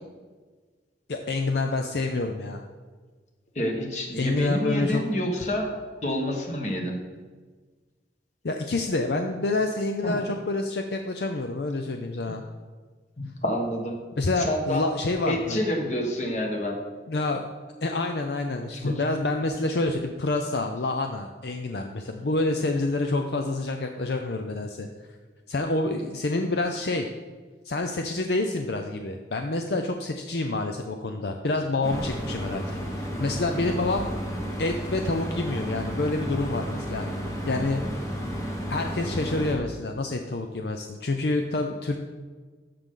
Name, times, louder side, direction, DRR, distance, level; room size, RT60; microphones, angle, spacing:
voice 1, 1.1-2.6 4.1-5.0 8.4-12.4 14.2-15.6 17.1-17.4 17.8-24.9 25.5-27.1 27.6-34.1 34.6-37.1 37.5-37.8 38.7-42.0, left 2 dB, 65° left, 4 dB, 0.6 m, -27 dB
voice 2, 3.5-5.7 6.0-6.9 10.0-10.2 13.2-14.0 14.4-14.8 15.2-16.8 18.7-19.0 37.5-37.7, equal, 40° left, 2 dB, 1.6 m, -28 dB
sound 1, 31.8-39.5, equal, 15° left, 1.3 m, -32 dB
13.5 x 6.7 x 3.8 m, 1.4 s
head